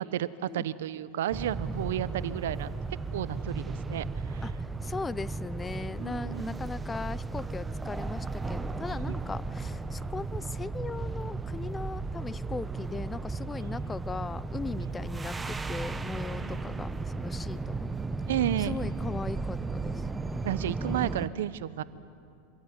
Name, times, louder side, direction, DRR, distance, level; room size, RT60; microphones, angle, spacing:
voice 1, 0.0-2.7 3.1-4.5 6.0-6.6 8.9-9.0 13.6-13.8 16.4-17.0 18.3-18.8 20.4-21.8, right 11 dB, 80° right, 16 dB, 0.8 m, -32 dB
sound 1, 1.3-21.3, right 3 dB, 15° right, 0.8 m, -35 dB
voice 2, 4.8-17.9 18.6-20.0, left 4 dB, 15° left, 19 dB, 0.5 m, -38 dB
25.0 x 15.5 x 9.6 m, 2.6 s
hypercardioid pair, 110°, 0 cm